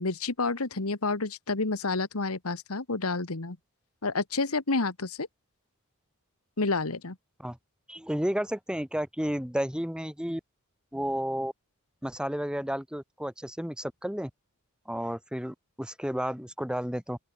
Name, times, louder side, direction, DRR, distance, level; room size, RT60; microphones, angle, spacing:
voice 1, 0.0-3.6 4.0-5.3 6.6-7.2, left 3 dB, 80° left, 1.7 m, -29 dB
voice 2, 7.9-10.4 10.9-11.5 12.0-14.3 14.9-17.2, equal, 5° right, 2.3 m, -32 dB
open air
head